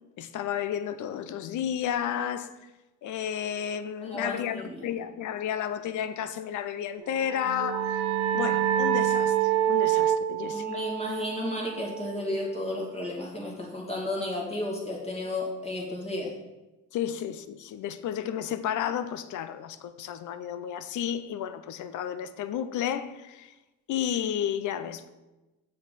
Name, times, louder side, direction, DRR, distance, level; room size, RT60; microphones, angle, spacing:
voice 1, 0.2-2.7 3.0-8.1 8.3-10.7 16.9-23.5 23.9-25.1, left 9 dB, 75° left, 0.6 m, -32 dB
voice 2, 4.0-4.9 10.5-16.3, left 1 dB, 20° left, 2.4 m, -33 dB
sound 1, 7.1-12.5, right 10 dB, 70° right, 0.6 m, -27 dB
6.8 x 6.6 x 4.1 m
cardioid pair, 100°, 31 cm